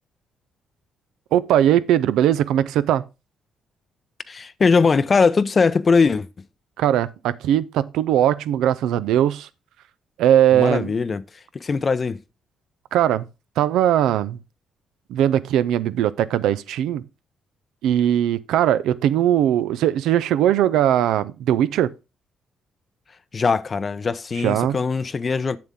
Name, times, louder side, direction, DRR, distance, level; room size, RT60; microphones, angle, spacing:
voice 1, 1.3-3.0 6.8-9.5 10.2-10.9 12.9-13.3 13.6-14.4 15.1-17.0 17.8-21.9 24.4-24.8, right 11 dB, 85° right, 0.5 m, -19 dB
voice 2, 4.3-6.3 10.5-11.2 11.5-12.2 23.3-25.6, left 4 dB, 35° left, 0.5 m, -20 dB
7.5 x 7.0 x 3.6 m
cardioid pair, 90°, 0 cm